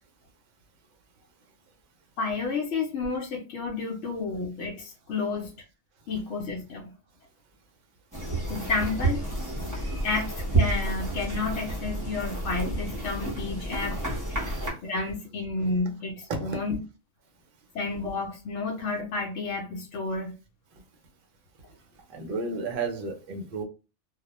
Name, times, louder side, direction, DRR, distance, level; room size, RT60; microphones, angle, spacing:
voice 1, 2.2-5.5 6.1-6.9 8.5-9.2 9.7-14.0 14.8-16.8 17.7-20.3, left 3 dB, 70° left, -2 dB, 0.9 m, -31 dB
sound 1, 8.1-14.7, right 2 dB, 20° right, 0.7 m, -30 dB
voice 2, 22.1-23.6, right 3 dB, 55° right, 3 dB, 0.7 m, -32 dB
2.3 x 2.1 x 2.8 m, 0.32 s
omnidirectional pair, 1.3 m